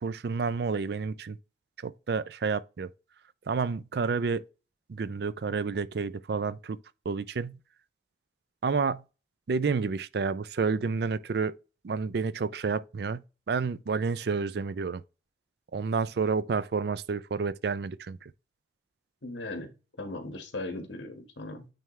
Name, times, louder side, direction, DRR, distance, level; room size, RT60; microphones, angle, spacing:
voice 1, 0.0-1.4 1.8-2.9 3.5-4.4 4.9-6.8 7.1-7.6 8.6-9.0 9.5-11.5 11.8-13.2 13.5-15.0 15.7-18.3, right 5 dB, 55° right, 0.4 m, -30 dB
voice 2, 19.2-21.7, left 2 dB, 80° left, 1.5 m, -38 dB
9.1 x 3.4 x 3.1 m
head